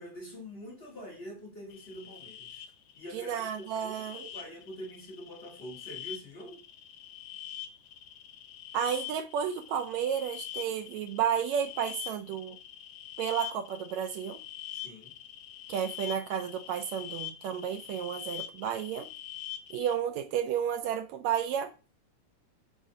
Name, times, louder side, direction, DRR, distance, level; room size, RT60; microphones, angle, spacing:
voice 1, 0.0-2.6 3.0-6.6 14.7-15.1, equal, 45° left, 0.8 m, -45 dB
sound 1, 1.7-20.0, left 12 dB, 80° left, 1.9 m, -44 dB
voice 2, 3.1-4.2 8.7-12.6 13.2-14.4 15.7-19.1 19.7-21.7, right 8 dB, 80° right, 1.7 m, -32 dB
5.0 x 3.7 x 5.3 m
omnidirectional pair, 3.4 m